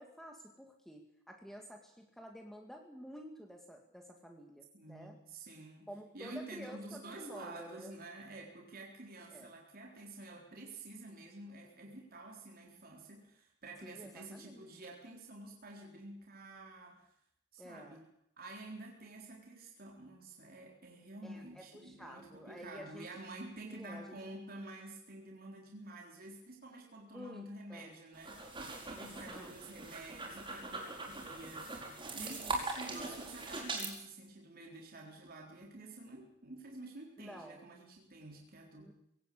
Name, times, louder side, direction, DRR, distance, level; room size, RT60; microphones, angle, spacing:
voice 1, 0.0-5.2 5.9-7.9 9.3-9.5 13.8-14.7 17.6-18.0 21.2-23.1 23.7-24.2 27.1-27.9 29.0-29.9 32.2-33.2 37.2-37.6 38.8-38.9, equal, ahead, 3 dB, 2.3 m, -51 dB
voice 2, 4.7-5.9 6.1-17.1 17.5-18.1 18.4-28.5 28.9-38.9, right 2 dB, 50° right, 0 dB, 3.9 m, -50 dB
sound 1, 28.1-33.9, right 3 dB, 25° right, 5.7 m, -41 dB
21.5 x 17.5 x 8.6 m, 0.76 s
head